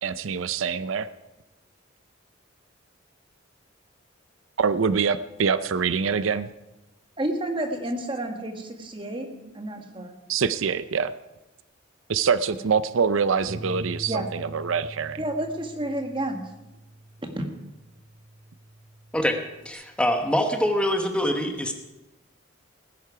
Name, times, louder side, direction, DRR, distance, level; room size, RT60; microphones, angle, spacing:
voice 1, 0.0-1.1 4.6-6.5 10.3-11.1 12.1-15.2, right 6 dB, 85° right, 14 dB, 0.5 m, -25 dB
voice 2, 7.2-9.3 9.5-10.1 14.1-14.3 15.2-16.4 17.3-17.4, right 1 dB, 25° right, 5 dB, 1.5 m, -30 dB
Bass guitar, 13.5-19.7, right 1 dB, 45° right, 1.3 m, -43 dB
voice 3, 19.6-21.7, left 1 dB, 5° left, 4 dB, 1.1 m, -24 dB
18.5 x 10.5 x 4.8 m, 1.0 s
head